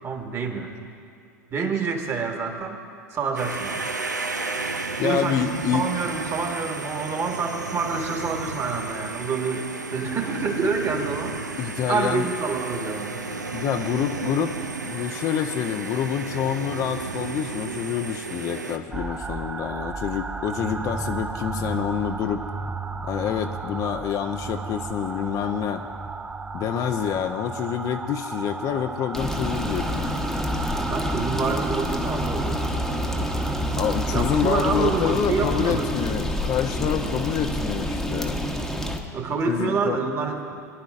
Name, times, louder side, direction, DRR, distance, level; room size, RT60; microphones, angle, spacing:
voice 1, 0.0-0.7 1.5-2.8 3.1-3.9 5.0-11.4 11.9-13.2 30.8-32.6 34.1-35.9 39.1-40.6, right 4 dB, 30° right, 3 dB, 1.6 m, -27 dB
sound 1, 3.4-18.8, right 3 dB, 90° right, 0.6 m, -33 dB
voice 2, 5.0-5.8 11.6-12.3 13.5-14.6 14.8-22.4 23.0-25.8 26.5-29.9 33.8-38.4 39.5-40.0, left 9 dB, 40° left, 7 dB, 0.6 m, -27 dB
sound 2, 18.9-35.2, right 4 dB, 10° right, 0.4 m, -34 dB
sound 3, 29.1-39.0, left 1 dB, 5° left, 1.0 m, -27 dB
21.5 x 10.5 x 2.5 m, 2.4 s
figure-of-eight pair, 85°, 9 cm